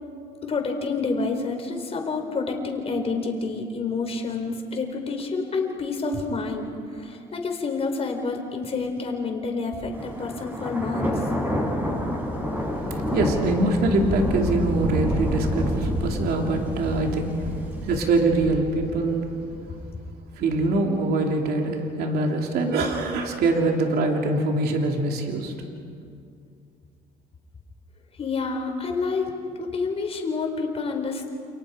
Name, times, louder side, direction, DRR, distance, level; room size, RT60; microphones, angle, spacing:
voice 1, 0.4-11.2 28.2-31.3, left 4 dB, 35° left, 3 dB, 4.4 m, -28 dB
Thunder, 9.9-19.8, equal, 10° right, 7.1 m, -28 dB
voice 2, 12.9-19.3 20.4-25.6, right 2 dB, 70° right, 1 dB, 3.1 m, -24 dB
29.0 x 29.0 x 5.1 m, 2.3 s
cardioid pair, 110°, 17 cm